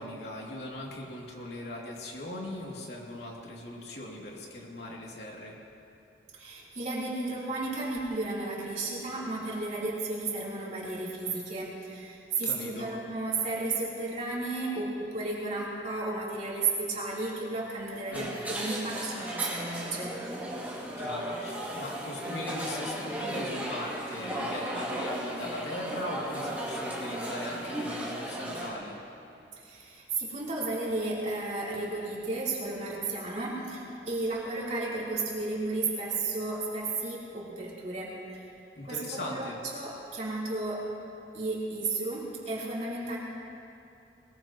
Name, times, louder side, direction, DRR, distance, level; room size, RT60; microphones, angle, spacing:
voice 1, 0.0-5.5 12.4-12.9 18.1-18.4 21.0-29.0 38.7-39.6, left 1 dB, 70° left, -3 dB, 2.8 m, -39 dB
voice 2, 6.3-20.2 29.6-38.5 38.9-40.9 41.3-43.2, right 3 dB, 40° right, -6 dB, 3.7 m, -33 dB
sound 1, 18.1-28.7, right 1 dB, 10° right, 2.7 m, -35 dB
22.0 x 21.0 x 3.1 m, 2.7 s
head